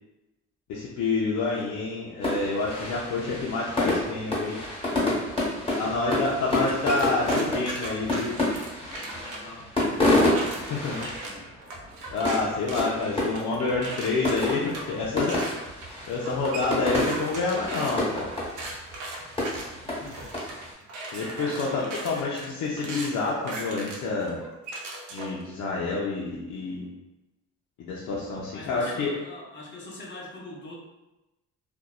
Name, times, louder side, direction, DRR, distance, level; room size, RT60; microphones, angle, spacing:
voice 1, 0.7-4.6 5.8-8.4 10.7-11.0 12.1-15.4 16.1-18.3 21.1-24.4 25.1-26.9 27.8-29.1, left 3 dB, 75° left, -5 dB, 0.5 m, -28 dB
sound 1, 2.2-20.7, left 1 dB, 20° left, 1.1 m, -29 dB
voice 2, 5.6-5.9 8.9-11.5 20.0-21.0 21.4-22.4 28.5-30.8, left 2 dB, 40° left, -3 dB, 0.7 m, -44 dB
sound 2, 6.1-9.4 9.8-25.4, right 2 dB, 80° right, 0.6 m, -38 dB
2.6 x 2.1 x 2.3 m, 1.0 s
cardioid pair, 90°, 30 cm